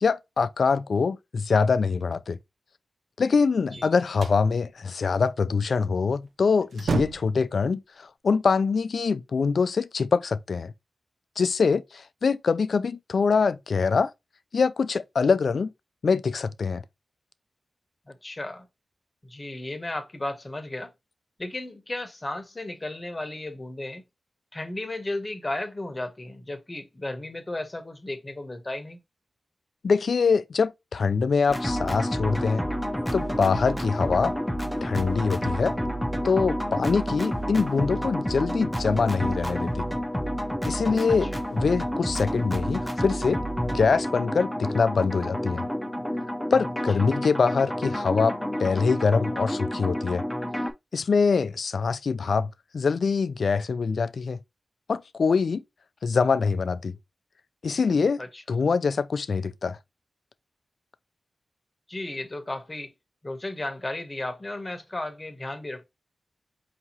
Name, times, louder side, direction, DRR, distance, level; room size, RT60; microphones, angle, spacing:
voice 1, 0.0-2.4 3.2-10.7 11.4-14.1 14.5-15.7 16.0-16.8 29.8-32.6 33.1-34.3 34.8-35.7 36.2-39.9 40.7-45.7 46.5-50.2 50.9-54.4 54.9-55.6 56.0-57.0 57.6-58.2 58.5-59.8, left 5 dB, 70° left, 0.4 m, -24 dB
sound 1, 3.7-4.5 6.1-6.3 6.6-7.4, right 5 dB, 85° right, 0.4 m, -31 dB
voice 2, 18.1-18.7 19.2-20.9 21.4-24.0 24.5-29.0 41.2-41.4 58.2-58.4 61.9-62.9 63.2-65.9, left 2 dB, 30° left, 0.9 m, -34 dB
sound 2, 31.5-50.7, equal, 5° left, 0.7 m, -29 dB
4.8 x 2.8 x 2.8 m
cardioid pair, 60°, 0 cm